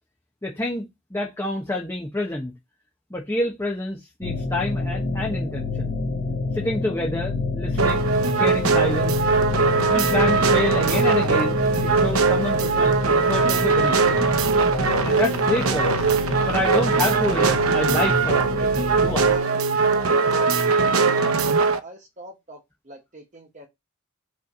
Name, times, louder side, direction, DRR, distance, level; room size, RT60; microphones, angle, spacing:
voice 1, 0.4-2.5 3.1-6.0 6.5-9.2 9.9-14.3 15.0-18.7 19.0-19.3, left 1 dB, 15° left, 1.1 m, -28 dB
sound 1, 4.2-19.4, left 3 dB, 55° left, 1.7 m, -28 dB
sound 2, 7.8-21.8, right 4 dB, 85° right, 0.7 m, -21 dB
voice 2, 19.8-20.7 21.2-23.7, right 1 dB, 35° right, 1.2 m, -44 dB
5.2 x 3.4 x 5.3 m
head